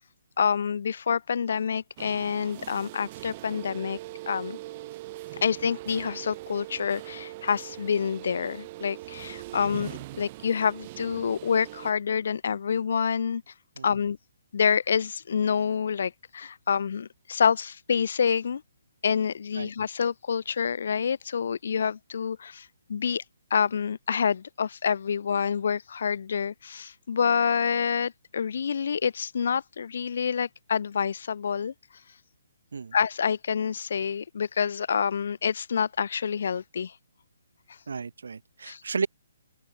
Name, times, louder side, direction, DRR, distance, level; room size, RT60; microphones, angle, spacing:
voice 1, 0.4-4.0 4.3-4.6 5.4-13.4 13.8-14.2 14.5-18.6 19.0-23.2 23.5-31.7 32.9-36.9 38.7-38.8, left 7 dB, 50° left, 0.3 m, -27 dB
sound 1, 2.0-11.9, right 18 dB, 20° right, 1.6 m, -41 dB
voice 2, 37.9-39.1, right 5 dB, 70° right, 0.6 m, -33 dB
open air
hypercardioid pair, 175°, 0 cm